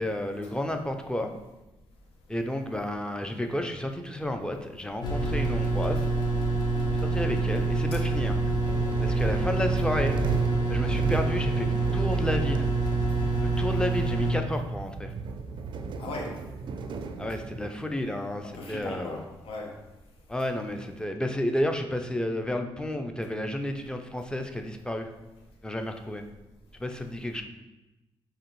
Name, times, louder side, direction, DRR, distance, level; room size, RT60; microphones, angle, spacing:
voice 1, 0.0-1.3 2.3-6.1 7.0-8.4 9.0-10.2 10.7-12.7 13.4-15.1 17.2-19.2 20.3-25.1 25.6-26.2 26.8-27.4, left 1 dB, 10° left, 5 dB, 0.4 m, -31 dB
sound 1, 5.0-14.3, right 3 dB, 50° left, 1.0 m, -26 dB
sound 2, 8.6-17.7, right 4 dB, 55° right, 0.4 m, -35 dB
voice 2, 16.0-16.3 18.4-19.7 27.3-27.4, left 2 dB, 85° left, 0 dB, 0.8 m, -38 dB
4.8 x 2.7 x 3.1 m, 1.0 s
cardioid pair, 70°, 10 cm